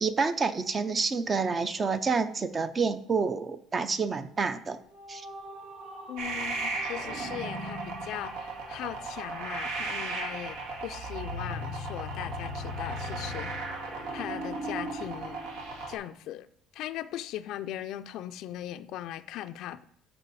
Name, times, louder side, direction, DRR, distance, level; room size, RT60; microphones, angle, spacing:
voice 1, 0.0-4.8 5.1-5.3, right 4 dB, 25° right, 0.5 m, -28 dB
sound 1, 4.6-10.0, right 2 dB, 65° right, 3.6 m, -47 dB
voice 2, 6.1-13.7 14.1-15.4 15.9-16.5 16.7-19.8, left 12 dB, 60° left, 0.4 m, -39 dB
sound 2, 6.2-15.9, right 2 dB, 85° right, 2.0 m, -35 dB
13.5 x 4.6 x 4.1 m
cardioid pair, 150°, 0 cm